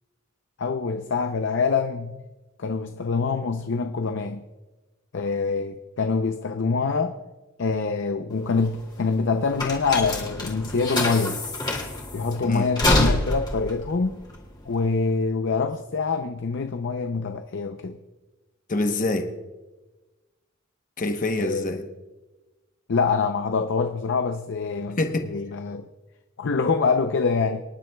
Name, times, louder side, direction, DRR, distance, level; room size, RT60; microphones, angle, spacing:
voice 1, 0.6-2.2 2.6-4.5 5.1-7.2 7.6-11.4 12.1-14.2 14.7-18.0 21.4-21.7 22.9-25.9 26.4-27.6, left 4 dB, 60° left, 7 dB, 0.6 m, -25 dB
sound 1, 8.3-15.1, left 1 dB, 20° left, 2.5 m, -26 dB
voice 2, 18.7-19.3 21.0-21.8 25.0-25.3, left 2 dB, 40° left, 5 dB, 1.0 m, -25 dB
25.5 x 11.0 x 2.3 m, 1.1 s
head